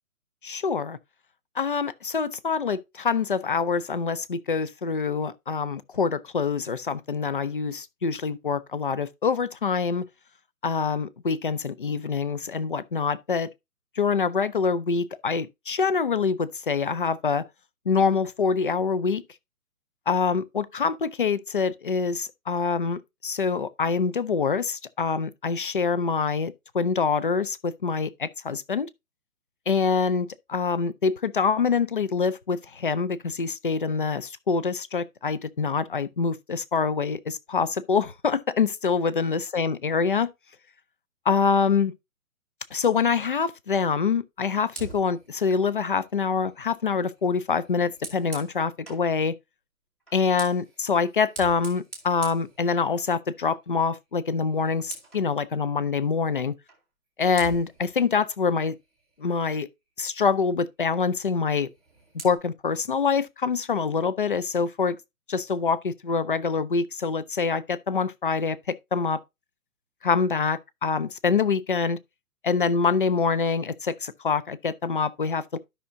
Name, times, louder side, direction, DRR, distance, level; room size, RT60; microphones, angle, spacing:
voice 1, 0.4-1.0 1.6-10.1 10.6-13.5 14.0-17.4 17.9-19.2 20.1-28.9 29.7-40.3 41.3-41.9 42.7-49.3 50.1-56.6 57.2-58.7 59.2-59.7 60.0-61.7 62.2-65.0 65.3-69.2 70.0-72.0 72.4-75.6, left 5 dB, 40° left, 0.4 m, -25 dB
Fire, 44.7-49.1 50.0-53.3 53.6-53.9 54.2-55.3 56.7-56.8 57.3-59.7 61.6-62.3, right 3 dB, ahead, 0.7 m, -45 dB
12.0 x 5.6 x 2.6 m
hypercardioid pair, 155°, 45 cm